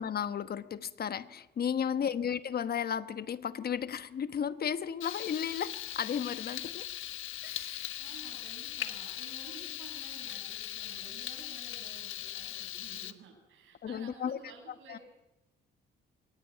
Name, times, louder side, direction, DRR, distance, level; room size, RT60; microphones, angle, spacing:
voice 1, 0.0-6.9 7.4-8.0 13.8-14.4 14.9-15.0, left 8 dB, 50° left, 14 dB, 1.2 m, -34 dB
voice 2, 1.9-2.2 6.4-6.6 7.6-7.7 8.0-15.0, right 5 dB, 80° right, 1 dB, 7.3 m, -53 dB
Frying (food), 5.0-13.1, left 13 dB, 85° left, 1.3 m, -40 dB
23.0 x 18.5 x 9.4 m, 0.98 s
cardioid pair, 90°, 20 cm